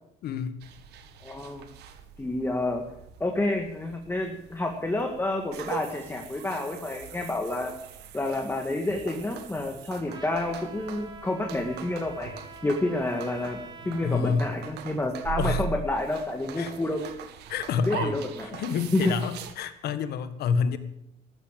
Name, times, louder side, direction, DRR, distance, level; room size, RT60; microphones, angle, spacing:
voice 1, 0.2-0.6 14.0-14.6 15.4-15.6 16.6-16.7 17.5-20.8, left 6 dB, 70° left, 11 dB, 1.7 m, -28 dB
sound 1, 0.6-19.5, right 8 dB, 80° right, 1.8 m, -41 dB
voice 2, 1.2-1.7 2.2-2.8 3.2-7.7 8.1-12.3 12.6-13.6 13.8-17.0 17.9-18.5 18.9-19.1, left 2 dB, 15° left, 3 dB, 2.0 m, -29 dB
Trumpet, 10.1-14.3, right 3 dB, 25° right, 3.0 m, -45 dB
14.0 x 13.0 x 7.6 m, 0.79 s
cardioid pair, 110°, 17 cm